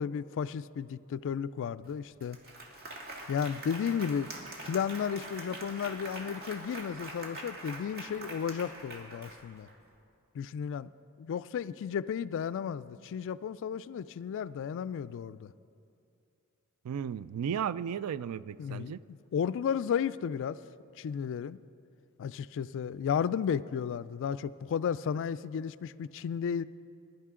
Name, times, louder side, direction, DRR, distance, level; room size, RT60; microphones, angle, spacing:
voice 1, 0.0-2.4 3.3-4.3 4.6-9.7 10.3-10.9 11.2-15.5 18.6-18.9 19.3-20.6 21.0-21.6 22.2-26.6, left 7 dB, 60° left, 16 dB, 0.3 m, -33 dB
Applause, 1.8-1.9 2.2-9.7, right 2 dB, 45° right, 1.7 m, -44 dB
voice 2, 16.8-19.0, right 8 dB, 80° right, 18 dB, 0.3 m, -34 dB
20.5 x 11.0 x 3.7 m, 2.5 s
head